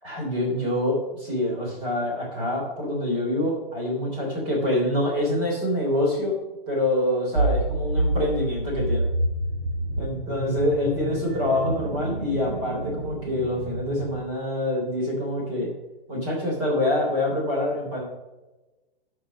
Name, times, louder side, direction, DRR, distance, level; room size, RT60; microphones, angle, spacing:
voice 1, 0.0-6.3 6.7-9.1 10.0-15.7 16.1-18.0, left 1 dB, 25° right, -2 dB, 3.3 m, -26 dB
interesting-sound-whistle-wind, 7.4-14.2, right 1 dB, 65° right, 1.5 m, -28 dB
12.5 x 5.4 x 5.2 m, 1.1 s
hypercardioid pair, 180°, 30 cm